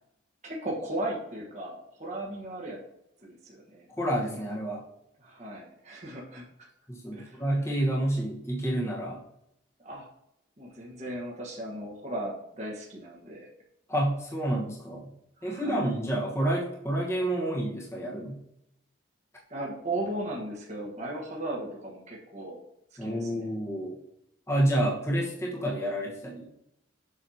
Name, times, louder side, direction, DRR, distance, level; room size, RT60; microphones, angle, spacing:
voice 1, 0.4-2.8 3.2-3.9 5.2-6.4 7.1-7.4 9.8-10.1 10.6-13.5 15.4-15.9 19.5-22.6 23.0-23.4, right 1 dB, 35° right, -3 dB, 1.3 m, -36 dB
voice 2, 4.0-4.8 6.9-9.2 13.9-15.1 15.4-18.4 23.0-24.0 24.5-26.4, right 1 dB, 15° left, -4 dB, 1.3 m, -29 dB
7.4 x 6.2 x 2.9 m, 0.79 s
head